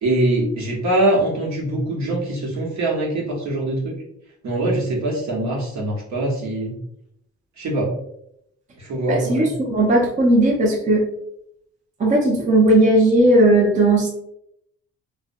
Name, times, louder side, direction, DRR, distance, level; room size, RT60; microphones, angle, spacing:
voice 1, 0.0-4.0 4.4-6.7 7.6-7.9 8.8-9.5, right 1 dB, 65° right, -4 dB, 1.1 m, -23 dB
voice 2, 9.1-11.1 12.0-14.1, right 1 dB, 25° right, 0 dB, 0.5 m, -16 dB
2.6 x 2.0 x 2.6 m, 0.76 s
cardioid pair, 90°, 30 cm